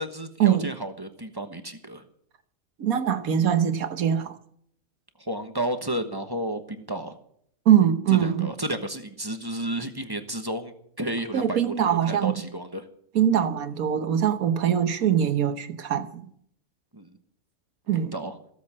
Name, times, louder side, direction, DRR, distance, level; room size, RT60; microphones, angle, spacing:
voice 1, 0.0-2.0 5.2-7.2 8.1-12.9 16.9-17.2 17.9-18.4, right 1 dB, 20° right, 1.1 m, -32 dB
voice 2, 2.8-4.4 7.6-8.5 11.3-12.3 13.1-16.2 17.9-18.1, right 9 dB, 90° right, 1.5 m, -22 dB
17.0 x 7.9 x 7.5 m
omnidirectional pair, 1.5 m